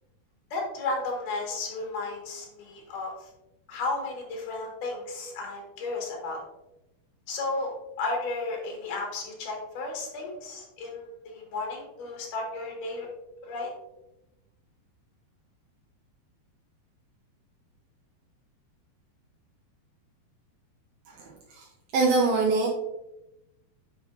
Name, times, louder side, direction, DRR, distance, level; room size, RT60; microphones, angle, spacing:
voice 1, 0.5-3.3 3.7-6.4 7.3-13.1 13.4-13.7, left 3 dB, 60° left, 0 dB, 2.9 m, -33 dB
voice 2, 21.1-21.7 21.9-22.7, right 3 dB, 80° right, -1 dB, 2.6 m, -24 dB
9.6 x 5.1 x 2.6 m, 0.94 s
omnidirectional pair, 4.6 m